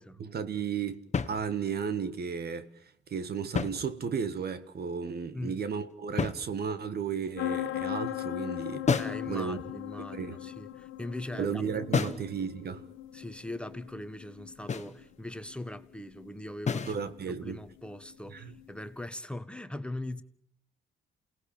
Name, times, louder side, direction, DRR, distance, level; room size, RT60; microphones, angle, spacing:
voice 1, 0.2-1.0 1.3-2.7 3.1-9.0 9.3-9.6 10.1-10.4 11.4-12.9 16.9-17.6 18.3-18.5, right 6 dB, 55° right, 1.8 m, -34 dB
sound 1, 1.1-1.9 3.4-4.4 6.2-7.0 8.9-9.3 11.9-12.3 14.7-15.0 16.7-17.0, left 5 dB, 35° left, 1.6 m, -31 dB
voice 2, 5.3-5.6 9.0-11.6 11.9-12.2 13.1-20.2, left 1 dB, 5° left, 1.6 m, -41 dB
sound 2, 7.4-18.9, left 13 dB, 85° left, 1.3 m, -39 dB
28.5 x 18.5 x 8.8 m
cardioid pair, 90°, 20 cm